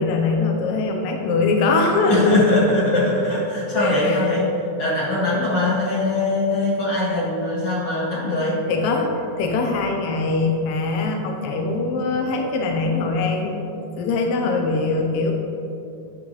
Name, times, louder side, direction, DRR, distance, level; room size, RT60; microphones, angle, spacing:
voice 1, 0.0-2.3 2.9-3.0 3.8-4.3 8.7-9.1 9.4-13.6 14.0-15.3, left 3 dB, 80° left, 2 dB, 1.3 m, -22 dB
voice 2, 2.1-4.5 4.8-8.6, left 2 dB, 45° left, -7 dB, 2.4 m, -21 dB
9.7 x 6.1 x 3.1 m, 2.8 s
omnidirectional pair, 3.4 m